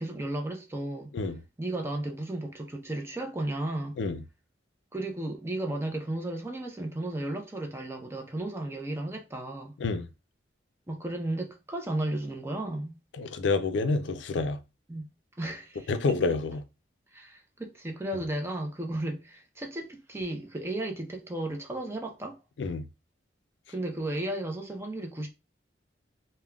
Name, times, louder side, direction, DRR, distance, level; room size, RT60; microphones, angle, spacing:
voice 1, 0.0-1.1 1.6-4.0 4.9-9.7 10.9-12.9 14.9-15.1 15.4-16.2 17.1-22.4 23.7-25.3, right 1 dB, 15° right, 0.4 m, -34 dB
voice 2, 13.2-14.6 15.9-16.6 22.6-22.8, left 3 dB, 75° left, 0.4 m, -28 dB
3.5 x 2.1 x 2.2 m
head